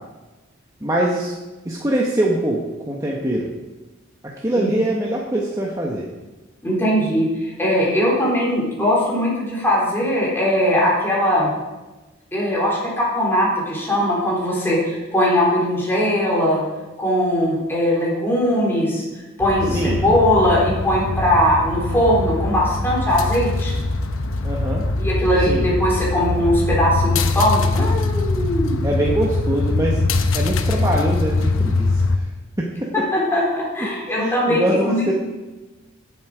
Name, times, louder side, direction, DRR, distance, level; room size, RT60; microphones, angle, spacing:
voice 1, 0.8-1.3 1.7-2.6 2.9-3.5 4.4-6.1 19.7-20.0 24.4-24.8 25.5-25.6 28.8-30.0 30.3-31.9 32.6-32.9 34.2-35.1, right 1 dB, 15° right, -3 dB, 1.3 m, -22 dB
voice 2, 6.6-7.3 7.6-11.5 12.3-16.6 17.0-19.0 19.4-23.7 25.0-28.8 32.9-35.1, equal, 10° left, -6 dB, 3.9 m, -20 dB
sound 1, 19.4-32.2, left 3 dB, 70° left, 1.0 m, -22 dB
17.0 x 8.1 x 5.0 m, 1.1 s
head